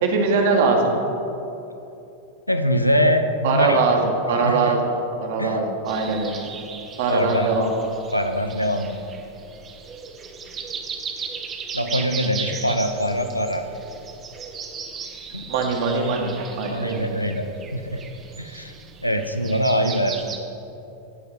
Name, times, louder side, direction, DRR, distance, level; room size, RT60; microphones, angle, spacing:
voice 1, 0.0-0.9 3.4-4.8 5.2-6.4 7.0-7.7 15.5-17.2, right 4 dB, 55° right, 1 dB, 2.0 m, -21 dB
voice 2, 2.5-3.8 4.4-4.7 5.4-5.6 7.1-7.5 8.1-9.0 11.7-13.7 15.3-15.5 16.7-17.5 17.7-18.0 18.4-18.7 19.0-20.2, equal, 90° left, 7 dB, 0.8 m, -23 dB
sound 1, 5.9-20.4, right 6 dB, 25° right, 1.3 m, -37 dB
16.5 x 5.6 x 7.5 m, 2.9 s
figure-of-eight pair, 90°, 0 cm